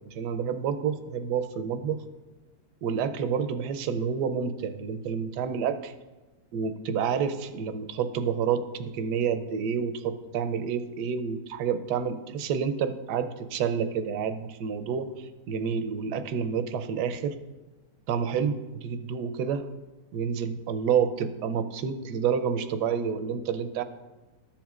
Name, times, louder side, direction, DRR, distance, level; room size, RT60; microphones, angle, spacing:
voice 1, 0.1-2.0 2.8-5.9 6.5-17.4 18.1-19.7 20.1-23.8, right 7 dB, 75° right, 10 dB, 1.1 m, -29 dB
13.0 x 7.2 x 2.4 m, 1.2 s
omnidirectional pair, 1.8 m